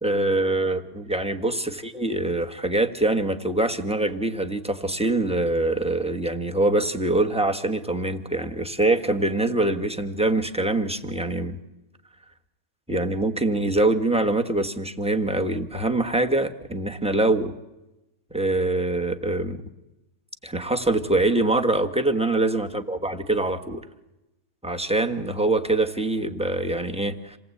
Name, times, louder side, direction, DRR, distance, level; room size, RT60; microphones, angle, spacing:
voice 1, 0.0-11.6 12.9-17.5 18.3-19.6 20.4-23.8 24.6-27.4, right 2 dB, 5° right, 6 dB, 1.1 m, -24 dB
27.5 x 19.0 x 8.4 m, 0.99 s
omnidirectional pair, 1.5 m